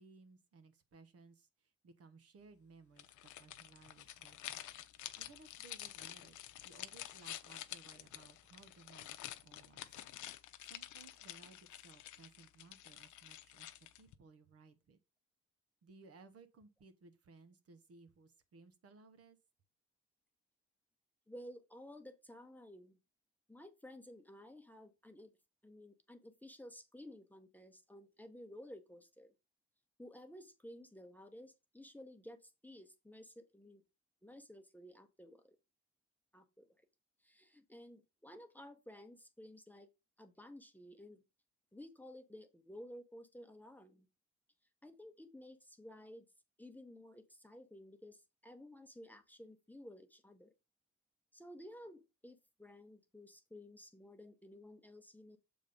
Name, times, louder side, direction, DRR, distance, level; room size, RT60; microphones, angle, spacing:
voice 1, 0.0-4.6 5.2-9.8 10.3-15.0 15.8-19.4, right 4 dB, 50° right, 1.1 m, -61 dB
sound 1, 3.0-14.1, left 13 dB, 80° left, 0.7 m, -49 dB
voice 2, 21.3-23.0 23.5-25.3 25.6-29.3 30.0-33.8 34.2-35.6 36.3-36.7 37.2-39.9 40.2-41.2 41.7-44.1 44.8-46.3 46.6-50.5 51.3-55.4, left 1 dB, 5° left, 1.0 m, -54 dB
7.0 x 3.7 x 5.2 m
cardioid pair, 90°, 30 cm